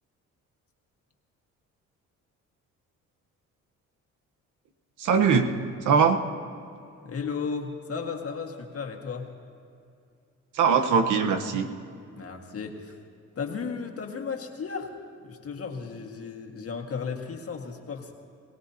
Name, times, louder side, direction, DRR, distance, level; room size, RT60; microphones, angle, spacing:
voice 1, 5.0-5.5 5.8-6.2 10.5-11.7, right 6 dB, 80° right, 6 dB, 1.1 m, -21 dB
voice 2, 7.0-9.3 12.2-13.0 13.4-14.9 15.2-18.1, left 5 dB, 50° left, 2 dB, 1.8 m, -34 dB
22.0 x 17.5 x 2.8 m, 2.5 s
cardioid pair, 90°, 30 cm